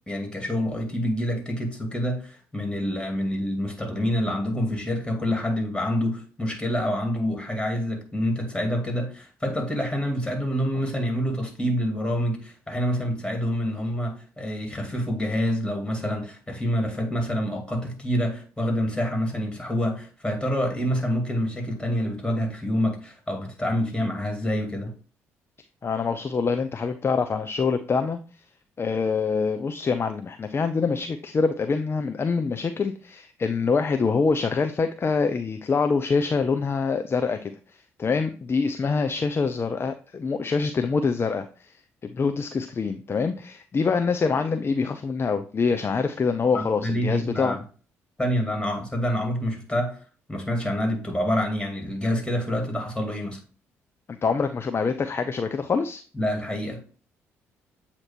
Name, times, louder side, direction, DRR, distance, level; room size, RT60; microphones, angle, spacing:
voice 1, 0.1-24.9 46.5-47.6 48.2-50.0 50.3-53.4 56.1-56.9, equal, 15° left, 2.4 m, -27 dB
voice 2, 25.8-28.2 28.8-37.5 38.0-41.7 42.0-47.6 54.2-56.0, left 5 dB, 35° left, 0.5 m, -25 dB
7.8 x 2.9 x 4.3 m
hypercardioid pair, 45°, 7 cm